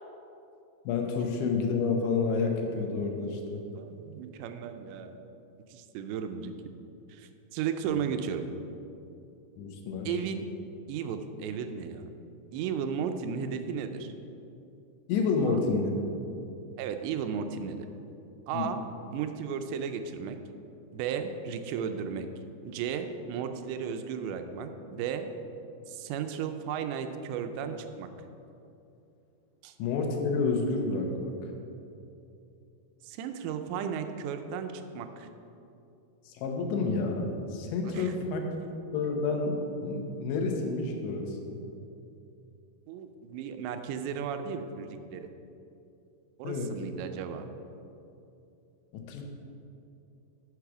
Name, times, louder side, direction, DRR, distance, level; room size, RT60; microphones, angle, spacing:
voice 1, 0.9-3.6 9.6-10.1 15.1-16.4 18.5-18.8 29.8-31.3 36.3-41.6 46.4-46.7 48.9-49.2, left 4 dB, 85° left, 3 dB, 3.3 m, -29 dB
voice 2, 3.7-5.2 5.7-6.5 7.1-8.5 10.1-10.5 10.9-12.1 12.5-14.1 15.4-15.6 16.8-17.9 18.5-18.8 19.1-20.4 20.9-22.3 22.6-25.3 25.9-28.1 29.6-29.7 33.0-35.3 37.8-38.1 42.9-45.3 46.4-47.5, right 7 dB, 85° right, 7 dB, 2.8 m, -34 dB
8.2 x 6.4 x 6.0 m, 2.7 s
omnidirectional pair, 5.0 m